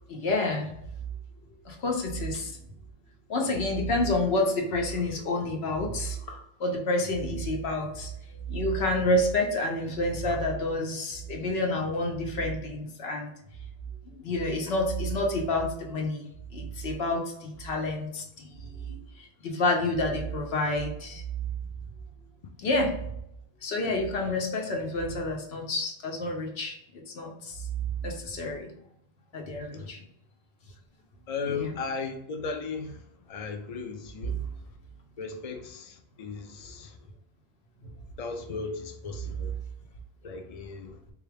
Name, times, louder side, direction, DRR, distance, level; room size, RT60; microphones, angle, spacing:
voice 1, 0.1-0.7 1.6-2.5 3.3-8.1 8.5-13.3 14.2-16.2 16.5-21.2 22.6-23.0 23.6-28.7 29.3-30.0 31.5-31.8 34.3-34.5, left 1 dB, 85° left, 2 dB, 1.0 m, -29 dB
voice 2, 31.3-34.5 35.2-37.0 38.2-39.5 40.2-41.0, left 4 dB, 45° left, 5 dB, 0.5 m, -36 dB
3.8 x 2.4 x 3.3 m, 0.77 s
omnidirectional pair, 1.0 m